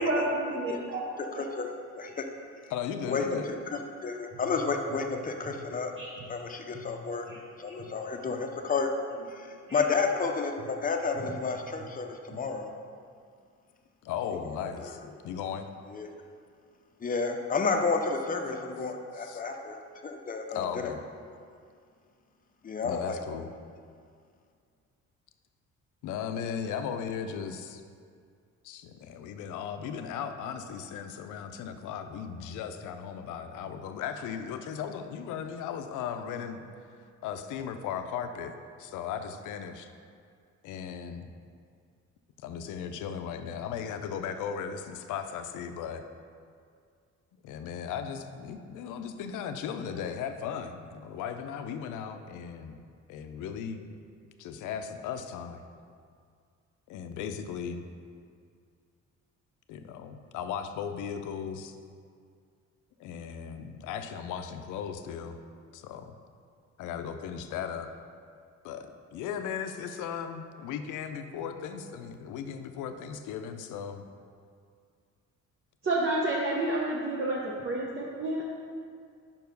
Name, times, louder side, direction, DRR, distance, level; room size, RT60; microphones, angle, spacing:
voice 1, 0.0-1.0 6.0-6.1 6.7-6.8 7.3-7.4 7.8-7.9 9.7-9.8 12.3-12.4 75.8-78.4, right 2 dB, 40° right, -4 dB, 0.9 m, -30 dB
voice 2, 1.2-2.3 3.1-5.9 6.3-7.3 7.6-8.9 9.3-12.7 14.2-14.9 15.9-16.1 17.0-19.8 20.0-20.9 22.6-23.2, left 4 dB, 30° left, 3 dB, 0.7 m, -31 dB
voice 3, 2.7-3.5 14.0-15.7 19.2-19.4 20.5-21.0 22.8-23.5 26.0-27.8 28.6-36.6 37.2-38.5 38.8-39.9 40.6-41.3 42.4-46.0 47.4-52.8 53.1-53.9 54.4-55.6 56.9-57.9 59.7-61.8 63.0-65.4 65.7-66.1 66.8-67.9 68.6-74.0, left 7 dB, 90° left, 7 dB, 0.5 m, -37 dB
5.4 x 4.7 x 5.2 m, 2.2 s
cardioid pair, 90°, 30 cm